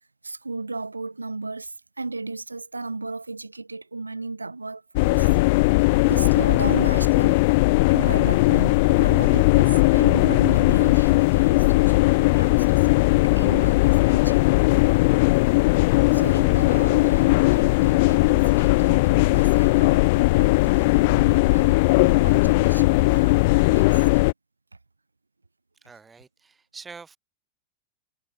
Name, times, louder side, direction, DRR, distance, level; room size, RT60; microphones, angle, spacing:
voice 1, 0.2-5.3 6.0-7.6 7.9-14.7 16.1-23.4 23.7-24.3, right 3 dB, 80° right, 1.5 m, -34 dB
sound 1, 5.0-24.3, left 23 dB, 50° left, 0.7 m, -18 dB
voice 2, 25.8-27.2, right 5 dB, 15° right, 3.4 m, -45 dB
figure-of-eight pair, 90°, 0 cm